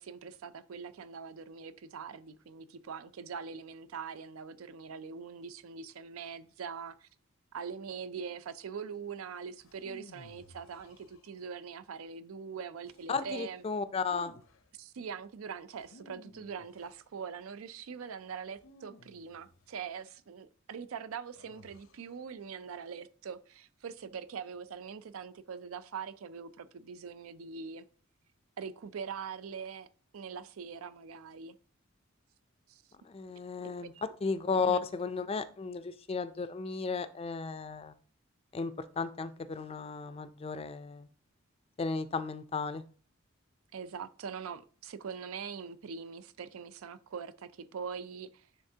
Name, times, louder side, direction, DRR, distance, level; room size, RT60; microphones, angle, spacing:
voice 1, 0.0-7.1 7.5-13.6 14.8-27.8 28.6-29.9 30.1-31.6 32.7-32.8 33.3-33.4 33.8-34.0 34.5-34.8 43.7-48.5, right 6 dB, 90° right, 0.4 m, -43 dB
sound 1, 9.6-11.6 12.8-13.3 14.0-14.7 15.7-17.1 18.6-19.8 21.4-22.1, left 2 dB, 70° left, 0.6 m, -55 dB
voice 2, 13.1-14.3 33.0-33.9 34.2-37.9 38.5-41.1 41.8-42.8, left 4 dB, 30° left, 0.4 m, -34 dB
9.9 x 3.4 x 2.8 m
head